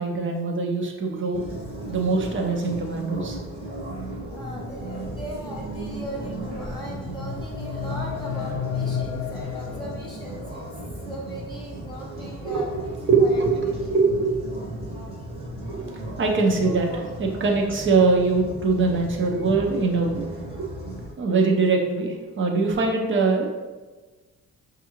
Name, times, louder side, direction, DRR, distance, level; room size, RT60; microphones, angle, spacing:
voice 1, 0.0-1.4 1.9-3.4 12.4-12.6 13.1-14.6 14.9-15.0 15.7-16.9 17.2-20.2 20.6-20.7 21.2-23.5, right 4 dB, 40° right, 1 dB, 0.8 m, -22 dB
sound 1, 1.3-21.1, right 1 dB, 20° right, 1.0 m, -36 dB
voice 2, 4.3-10.6 11.0-12.7 13.2-14.0 16.6-17.0 17.6-17.8, equal, 15° left, -7 dB, 0.7 m, -38 dB
sound 2, 6.8-10.7, left 9 dB, 70° left, 0.5 m, -32 dB
5.3 x 2.5 x 2.9 m, 1.3 s
cardioid pair, 90°, 30 cm